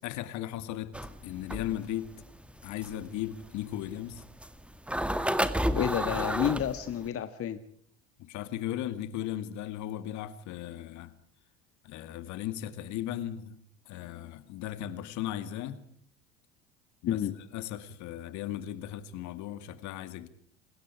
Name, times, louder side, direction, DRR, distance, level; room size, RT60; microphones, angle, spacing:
voice 1, 0.0-1.0 1.2-2.1 2.6-4.2 8.2-11.1 11.8-13.6 13.9-15.8 17.0-17.2 17.5-20.3, left 12 dB, 60° left, 2.3 m, -36 dB
sound 1, 0.9-7.1, equal, 5° right, 2.0 m, -31 dB
voice 2, 5.7-7.6 17.1-17.3, left 10 dB, 45° left, 1.6 m, -30 dB
27.0 x 20.5 x 4.7 m
hypercardioid pair, 70°, 33 cm